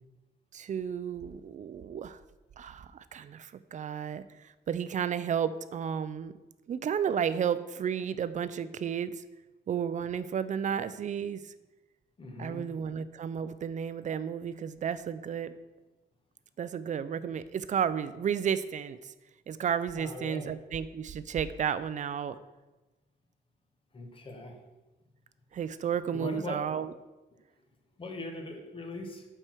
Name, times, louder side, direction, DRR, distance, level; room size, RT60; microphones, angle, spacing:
voice 1, 0.5-2.2 2.6-6.3 6.7-9.2 9.7-11.5 12.4-15.5 16.6-19.1 19.5-22.4 25.5-26.9, right 8 dB, 45° right, 14 dB, 0.4 m, -32 dB
voice 2, 12.2-12.6 19.9-20.5 23.9-24.6 26.1-26.7 28.0-29.3, left 1 dB, 30° left, 3 dB, 1.2 m, -40 dB
7.9 x 4.4 x 6.1 m, 1.1 s
wide cardioid pair, 160°, 18 cm